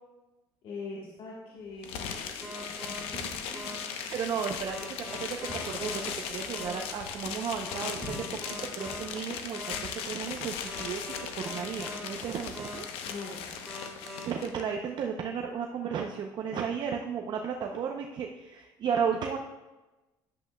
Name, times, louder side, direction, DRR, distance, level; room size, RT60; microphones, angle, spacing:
voice 1, 0.6-4.0 13.1-13.5, left 3 dB, 60° left, -3 dB, 1.3 m, -43 dB
sound 1, 1.8-14.6, left 7 dB, 80° left, 0.8 m, -38 dB
sound 2, 2.4-3.0 3.5-3.8 4.7-6.0 6.5-6.7 7.7-9.0 9.5-9.8 10.7-12.0 12.5-12.8 13.7-14.2, equal, 5° left, 2.2 m, -42 dB
sound 3, 3.1-4.0 4.3-4.4 5.5-6.1 6.6-6.7 8.0-8.6 8.9-9.5, left 1 dB, 20° left, 2.0 m, -44 dB
voice 2, 4.1-8.3 8.7-12.9 13.9-19.4, right 7 dB, 50° right, 2 dB, 0.6 m, -34 dB
10.5 x 7.8 x 2.2 m, 1.1 s
cardioid pair, 120°, 10 cm